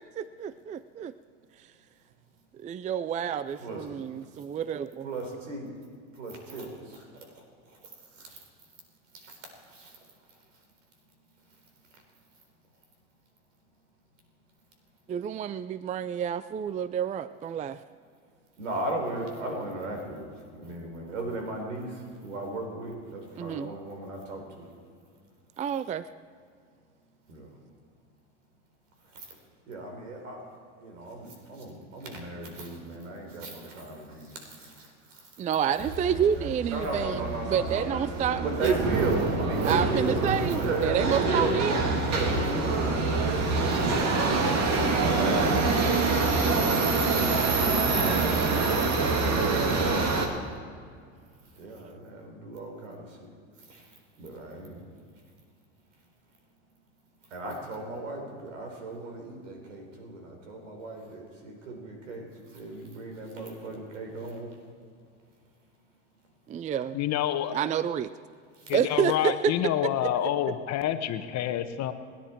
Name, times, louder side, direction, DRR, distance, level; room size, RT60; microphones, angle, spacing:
voice 1, 0.2-1.1 2.5-5.1 15.1-17.8 23.4-23.7 25.6-26.1 35.4-38.8 39.6-41.8 66.5-67.0 67.5-68.1 68.7-69.5 69.8-70.1, right 8 dB, 20° right, 16 dB, 0.4 m, -29 dB
voice 2, 5.0-5.7 6.2-7.3 8.2-8.4 9.2-9.3 9.7-9.9 18.6-20.2 20.5-24.6 27.3-27.5 29.7-30.4 30.8-34.9 35.7-37.9 38.4-40.2 40.5-42.7 43.6-44.2 44.7-45.9 46.7-49.8 51.6-53.3 53.7-53.9 54.2-54.9 57.3-64.5, right 2 dB, 80° right, 2 dB, 4.2 m, -36 dB
Subway metro underground, 35.8-50.3, right 3 dB, 45° right, 2.5 m, -26 dB
voice 3, 66.9-67.5 68.7-71.9, left 11 dB, 45° left, 9 dB, 1.2 m, -28 dB
29.5 x 10.5 x 4.6 m, 2.2 s
hypercardioid pair, 85°, 37 cm